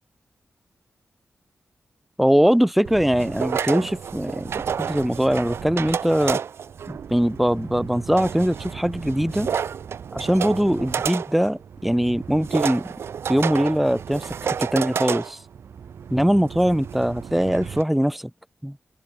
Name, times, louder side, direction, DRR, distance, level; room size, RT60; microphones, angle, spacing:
voice 1, 2.2-4.5 4.8-6.4 6.9-9.5 10.1-12.9 13.3-15.4 16.1-18.3 18.6-18.8, equal, 5° right, 0.5 m, -21 dB
sound 1, 2.8-17.8, right 7 dB, 85° right, 0.9 m, -31 dB
cardioid pair, 65°, 4 cm